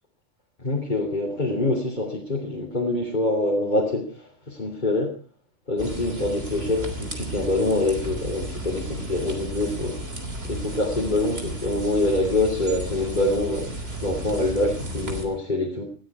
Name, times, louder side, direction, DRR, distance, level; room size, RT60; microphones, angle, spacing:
voice 1, 0.6-5.1 5.7-15.9, left 2 dB, 35° left, -2 dB, 3.0 m, -25 dB
sound 1, 5.8-15.2, right 1 dB, 50° right, 3.6 m, -33 dB
20.0 x 14.5 x 4.7 m, 0.39 s
omnidirectional pair, 1.3 m